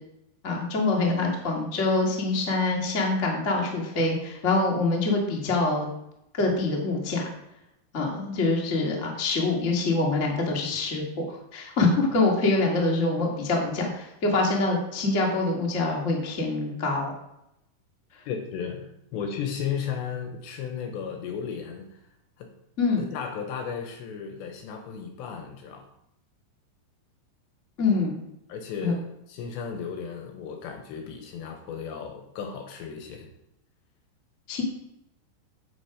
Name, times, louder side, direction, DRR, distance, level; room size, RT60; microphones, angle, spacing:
voice 1, 0.4-5.9 6.4-7.3 7.9-11.0 11.3-17.1 22.8-23.0 27.8-28.2 28.8-28.9 34.5-34.6, left 3 dB, 55° left, -1 dB, 0.8 m, -25 dB
voice 2, 18.3-18.9 19.1-21.9 22.4-22.5 23.0-25.8 28.5-33.3, left 7 dB, 75° left, 4 dB, 2.9 m, -34 dB
10.0 x 7.6 x 5.0 m, 0.84 s
omnidirectional pair, 5.8 m